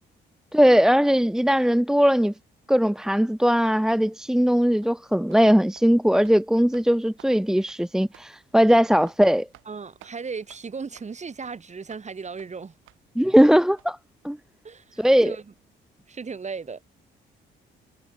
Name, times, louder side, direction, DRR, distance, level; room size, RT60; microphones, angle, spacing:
voice 1, 0.5-2.3 2.7-9.5 13.2-14.0 14.2-14.4 15.0-15.4, equal, 5° right, 1.0 m, -19 dB
sound 1, 4.8-5.0 5.3-5.5 5.7-5.9 6.2-6.4 6.7-6.9 7.2-7.3 7.7-7.8 8.1-8.3 8.6-8.7 9.0-9.2 9.5-9.7 10.0-10.1 10.5-10.6 10.9-11.1 11.4-11.5 11.9-12.0 12.4-12.5 12.9-13.0 13.3-13.4 13.8-13.9, right 15 dB, 90° right, 7.5 m, -52 dB
voice 2, 9.7-12.7 14.6-15.4 16.1-16.8, right 5 dB, 35° right, 7.7 m, -36 dB
cardioid pair, 90°, 20 cm